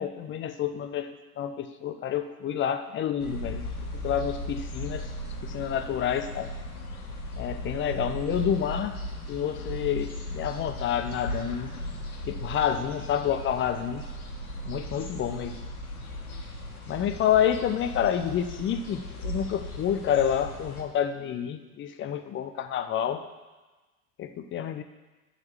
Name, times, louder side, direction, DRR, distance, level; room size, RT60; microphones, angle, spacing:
voice 1, 0.0-5.1 5.4-6.5 7.4-9.0 9.3-11.7 12.2-14.1 14.6-15.6 16.9-23.2 24.2-24.8, left 9 dB, 25° left, 10 dB, 0.7 m, -29 dB
sound 1, 3.2-20.8, left 1 dB, 80° left, 1.6 m, -37 dB
10.5 x 4.3 x 7.2 m, 1.2 s
figure-of-eight pair, 80°, 43 cm